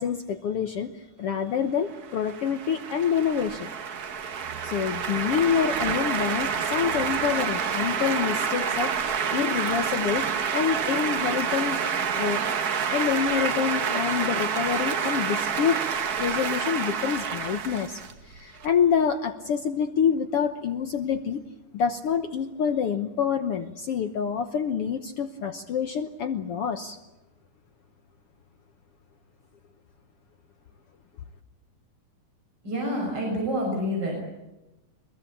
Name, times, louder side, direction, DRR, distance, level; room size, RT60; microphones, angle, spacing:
voice 1, 0.0-3.7 4.6-11.8 12.1-12.4 12.9-15.8 16.2-21.4 21.7-27.0, left 7 dB, 60° left, 8 dB, 1.7 m, -27 dB
sound 1, 2.0-18.7, right 7 dB, 75° right, 0.8 m, -28 dB
voice 2, 32.6-34.3, equal, 30° right, -1 dB, 6.8 m, -28 dB
24.5 x 21.5 x 8.6 m, 0.99 s
omnidirectional pair, 3.6 m